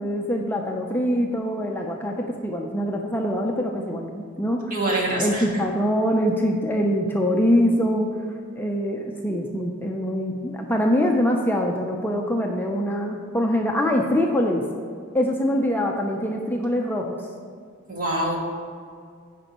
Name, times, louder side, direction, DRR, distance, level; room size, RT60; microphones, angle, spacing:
voice 1, 0.0-4.7 5.2-8.1 8.5-14.7 15.1-17.2, equal, 10° left, 1 dB, 0.6 m, -24 dB
voice 2, 4.7-5.6 17.9-18.4, right 1 dB, 45° right, -3 dB, 2.2 m, -25 dB
15.5 x 5.3 x 3.0 m, 2.2 s
head